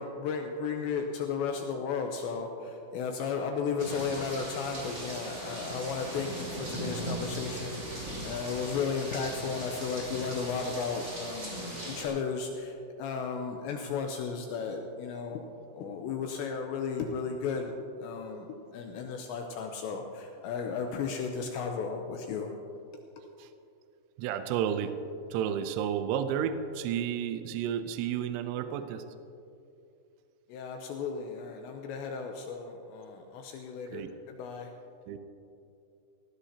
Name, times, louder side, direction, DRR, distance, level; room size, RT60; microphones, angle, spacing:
voice 1, 0.0-15.4 15.7-22.5 30.5-34.7, left 5 dB, 85° left, 3 dB, 2.6 m, -34 dB
sound 1, 3.8-12.1, right 1 dB, 20° right, 3.5 m, -39 dB
voice 2, 24.2-25.0 25.3-29.0 33.9-34.1 35.1-35.2, right 9 dB, 80° right, 9 dB, 2.9 m, -31 dB
18.5 x 16.5 x 2.8 m, 2.6 s
omnidirectional pair, 5.9 m